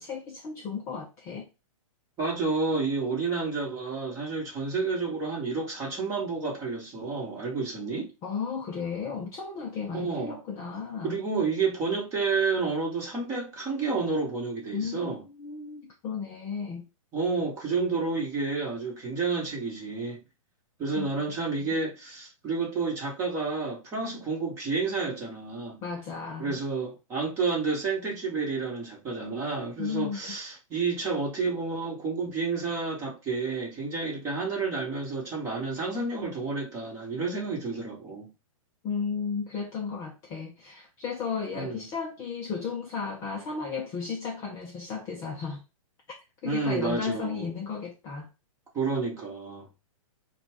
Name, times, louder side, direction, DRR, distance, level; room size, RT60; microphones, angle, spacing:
voice 1, 0.0-1.5 8.2-11.2 14.7-16.8 21.0-21.1 21.6-21.7 25.8-26.6 29.8-30.4 38.8-45.6 46.4-48.3, left 5 dB, 15° left, 0.5 m, -34 dB
voice 2, 2.2-8.1 9.9-10.4 11.0-15.2 17.1-20.2 20.8-25.8 26.4-38.3 41.5-41.9 46.4-47.5 48.7-49.7, right 4 dB, 15° right, 1.3 m, -30 dB
4.0 x 2.3 x 4.5 m
hypercardioid pair, 160°, 18 cm